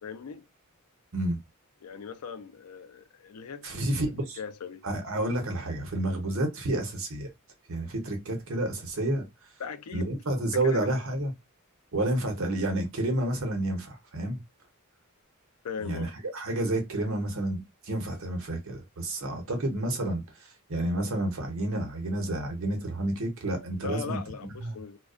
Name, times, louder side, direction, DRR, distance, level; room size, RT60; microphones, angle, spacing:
voice 1, 0.0-0.5 1.8-3.9 4.4-4.8 9.6-10.1 10.6-11.0 15.6-16.1 23.8-25.0, left 6 dB, 85° left, 0.4 m, -39 dB
voice 2, 3.6-4.4 4.8-7.3 7.7-9.3 9.9-11.3 11.9-14.4 15.8-24.7, right 1 dB, 65° right, 0.8 m, -30 dB
2.3 x 2.2 x 2.3 m
head